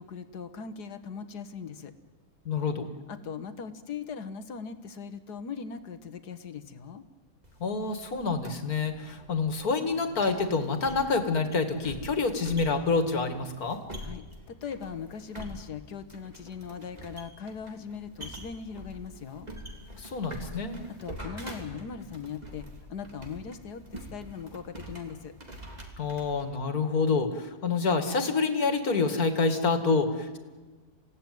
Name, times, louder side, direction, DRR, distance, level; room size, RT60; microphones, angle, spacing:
voice 1, 0.0-1.9 3.1-7.0 14.0-19.5 21.0-25.3, left 6 dB, 90° left, 10 dB, 2.0 m, -40 dB
voice 2, 2.5-2.9 7.6-13.8 19.9-20.8 26.0-30.4, left 4 dB, 70° left, 8 dB, 2.6 m, -27 dB
sound 1, 7.4-26.5, equal, 25° right, 3.4 m, -45 dB
28.5 x 17.0 x 9.4 m, 1.4 s
omnidirectional pair, 1.7 m